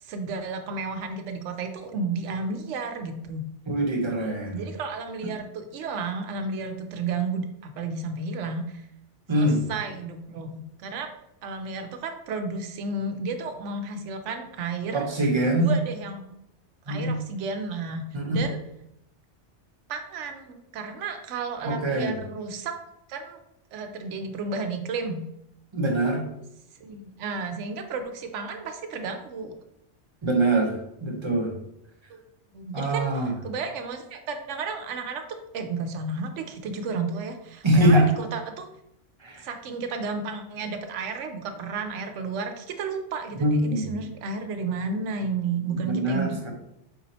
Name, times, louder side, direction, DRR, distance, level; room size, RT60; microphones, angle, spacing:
voice 1, 0.0-3.4 4.5-8.8 9.3-11.1 11.4-15.1 15.6-16.2 16.9-18.0 18.3-18.6 19.9-22.7 23.1-23.4 23.7-25.2 26.8-29.5 32.1-32.2 32.5-38.7 39.4-46.4, right 4 dB, 85° right, 6 dB, 0.9 m, -32 dB
voice 2, 3.7-4.7 9.3-9.6 14.9-15.7 16.9-17.2 18.1-18.4 21.6-22.1 25.7-26.2 30.2-31.5 32.7-33.3 37.6-38.1 39.2-39.5 43.4-43.9 45.6-46.5, right 1 dB, 30° right, 2 dB, 0.6 m, -23 dB
4.4 x 2.7 x 4.1 m, 0.81 s
omnidirectional pair, 1.2 m